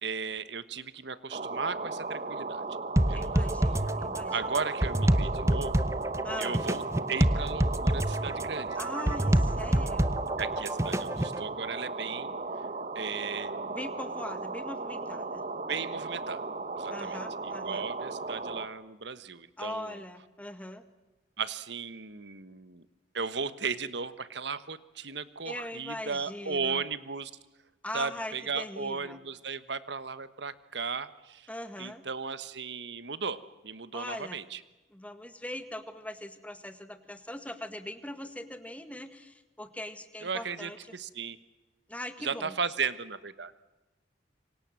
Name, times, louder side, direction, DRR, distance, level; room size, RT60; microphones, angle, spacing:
voice 1, 0.0-2.6 3.1-3.4 4.3-5.8 6.4-6.8 7.1-8.8 10.4-12.3 12.9-13.8 15.7-16.4 16.7-20.0 21.4-22.8 23.1-27.3 27.9-31.5 31.8-34.6 40.2-41.4 42.2-43.5, right 5 dB, 65° right, 14 dB, 1.3 m, -36 dB
sound 1, 1.3-18.7, right 3 dB, 40° right, 1.6 m, -36 dB
sound 2, 3.0-11.4, right 1 dB, 15° right, 0.9 m, -27 dB
voice 2, 3.1-4.3 6.2-6.6 8.8-10.2 13.6-15.5 16.9-17.8 19.6-20.8 25.5-26.8 27.8-29.2 31.5-32.0 33.9-34.4 34.9-40.8 41.9-42.5, left 1 dB, 10° left, 9 dB, 1.8 m, -41 dB
27.5 x 25.0 x 7.7 m, 1.1 s
head